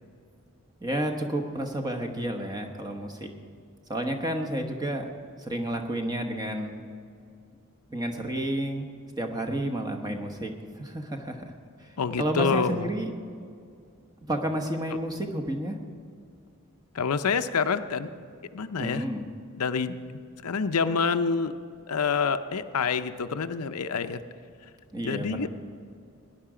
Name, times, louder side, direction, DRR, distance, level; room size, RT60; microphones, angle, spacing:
voice 1, 0.8-3.3 3.9-5.1 5.4-6.8 7.9-8.9 9.2-11.4 11.8-13.1 14.3-15.8 18.8-19.3 24.9-25.5, right 1 dB, 15° right, 4 dB, 1.0 m, -31 dB
voice 2, 12.0-12.9 16.9-18.1 18.5-19.0 19.6-20.0 20.4-21.5 21.9-24.2 25.0-25.5, left 5 dB, 90° left, 10 dB, 0.6 m, -27 dB
18.5 x 10.5 x 4.9 m, 2.3 s
head